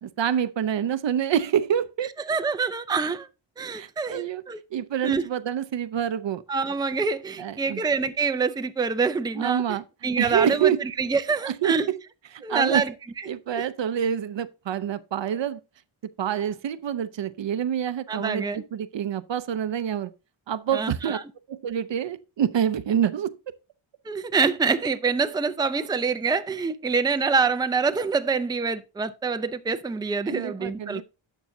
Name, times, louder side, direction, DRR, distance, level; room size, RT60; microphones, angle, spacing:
voice 1, 0.0-2.1 3.7-4.4 4.7-6.4 7.4-7.8 9.4-9.8 10.2-10.8 11.5-12.0 12.3-12.8 13.3-15.6 16.2-20.1 20.5-21.2 21.5-23.3 30.3-31.0, right 9 dB, 65° right, 0.7 m, -27 dB
voice 2, 2.0-3.2 3.6-4.6 5.0-5.3 6.5-11.9 12.4-13.3 13.6-13.7 18.1-18.6 20.7-21.3 24.1-31.0, right 4 dB, 10° right, 0.5 m, -26 dB
11.5 x 7.1 x 2.7 m
wide cardioid pair, 115°, 48 cm